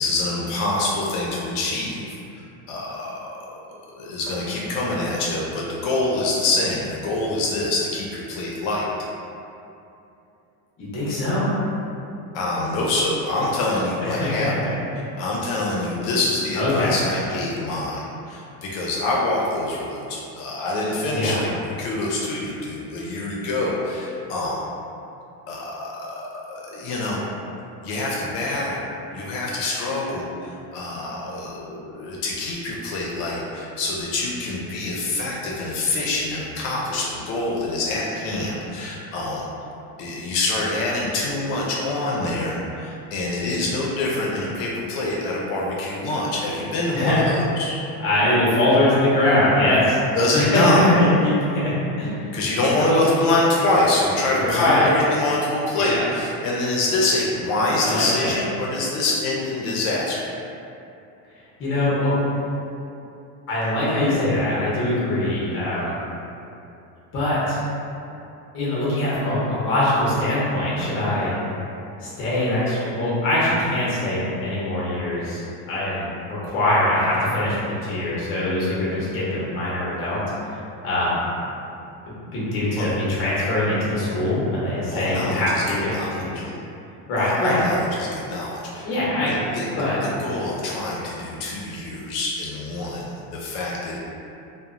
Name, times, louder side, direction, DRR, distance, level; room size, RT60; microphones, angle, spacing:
voice 1, 0.0-2.0 2.3-3.3 3.9-8.9 12.3-14.5 15.2-24.6 25.5-27.2 27.8-28.8 29.1-39.5 40.0-47.8 50.1-50.9 52.3-60.3 82.8-82.9 84.9-86.4 87.2-94.0, left 2 dB, 70° left, -4 dB, 0.5 m, -25 dB
voice 2, 10.8-11.4 13.7-14.5 16.6-16.9 21.1-21.4 38.2-38.5 46.9-47.2 48.0-50.0 50.3-51.7 52.0-52.1 52.8-53.0 54.3-54.9 55.7-56.0 57.8-58.3 61.6-62.2 63.5-66.0 67.1-67.6 68.5-71.3 72.0-75.4 75.7-80.2 80.8-81.2 82.1-86.3 87.1-87.6 88.8-89.3 89.8-90.0, left 1 dB, 30° left, -8 dB, 0.6 m, -22 dB
2.9 x 2.1 x 2.4 m, 2.7 s
cardioid pair, 170°, 44 cm